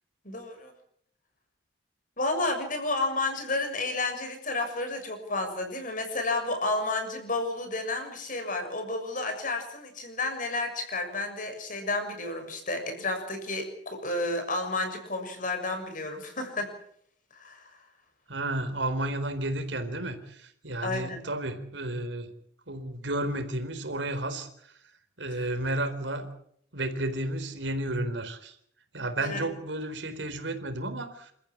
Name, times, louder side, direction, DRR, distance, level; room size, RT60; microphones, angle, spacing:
voice 1, 0.2-0.7 2.2-16.7 17.3-17.7 20.8-21.2 25.3-25.5 29.2-29.5, left 2 dB, 45° left, 6 dB, 6.8 m, -31 dB
voice 2, 18.3-22.3 22.7-24.5 25.2-26.3 26.7-28.5 28.9-31.3, right 1 dB, 80° right, 8 dB, 4.1 m, -32 dB
29.5 x 14.5 x 8.7 m, 0.67 s
head